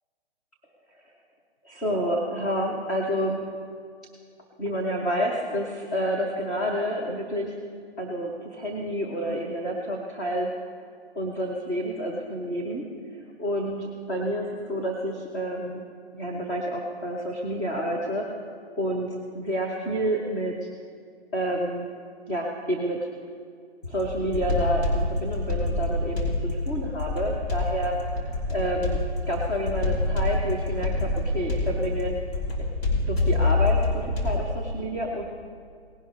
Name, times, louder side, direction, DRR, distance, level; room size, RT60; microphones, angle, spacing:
voice 1, 1.6-3.4 4.6-7.5 8.0-10.5 11.2-12.8 13.4-15.8 16.1-18.2 18.8-19.1 19.3-20.6 21.3-21.9 22.3-23.0 23.9-27.9 28.5-29.0 29.3-32.1 33.1-35.2, equal, 10° left, -1 dB, 0.7 m, -29 dB
sound 1, 23.8-34.5, left 2 dB, 65° left, 3.3 m, -27 dB
18.5 x 11.0 x 3.6 m, 2.2 s
hypercardioid pair, 155°, 33 cm